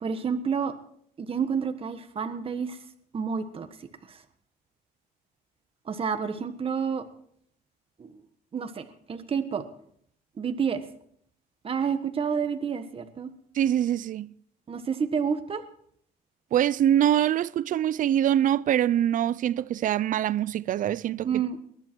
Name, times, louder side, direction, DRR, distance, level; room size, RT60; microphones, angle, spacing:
voice 1, 0.0-0.7 1.2-2.8 3.1-3.7 4.1-4.2 5.9-7.0 8.0-8.2 8.5-9.6 10.4-10.8 11.6-13.3 14.7-15.6 21.2-21.6, right 6 dB, 35° right, 1.4 m, -29 dB
voice 2, 13.5-14.3 16.5-21.3, right 11 dB, 50° right, 0.5 m, -24 dB
21.5 x 11.5 x 4.5 m
cardioid pair, 110°, 17 cm